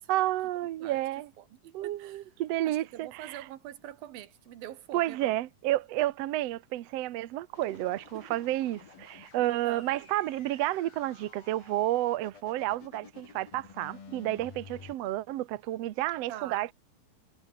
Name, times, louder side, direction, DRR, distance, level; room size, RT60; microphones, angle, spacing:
voice 1, 0.1-1.3 1.7-3.4 4.9-16.7, right 15 dB, 70° right, 1.6 m, -31 dB
voice 2, 1.4-2.2 2.6-5.4 9.6-9.8 16.3-16.7, right 12 dB, 85° right, 3.2 m, -44 dB
sound 1, 7.5-14.9, left 6 dB, 90° left, 6.1 m, -52 dB
omnidirectional pair, 4.1 m